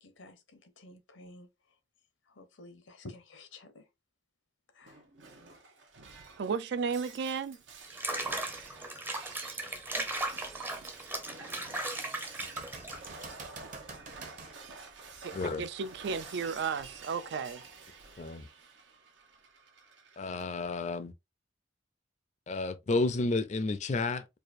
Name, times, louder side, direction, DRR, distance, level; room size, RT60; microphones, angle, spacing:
voice 1, 0.0-1.8 2.2-3.9 4.7-5.1, left 2 dB, 90° left, 0.9 m, -52 dB
Shatter, 4.8-20.4, right 4 dB, 80° right, 1.0 m, -50 dB
voice 2, 6.4-7.6 15.2-17.6, right 5 dB, 65° right, 0.4 m, -34 dB
Water / Bathtub (filling or washing), 7.8-13.3, right 2 dB, 10° right, 0.6 m, -37 dB
sound 1, 8.2-8.5 9.1-9.2 12.4-14.6 18.3-18.4, right 3 dB, 45° right, 0.9 m, -47 dB
voice 3, 15.3-15.6 18.2-18.5 20.2-21.1 22.5-24.4, left 3 dB, 40° left, 0.4 m, -31 dB
4.7 x 2.4 x 2.5 m
head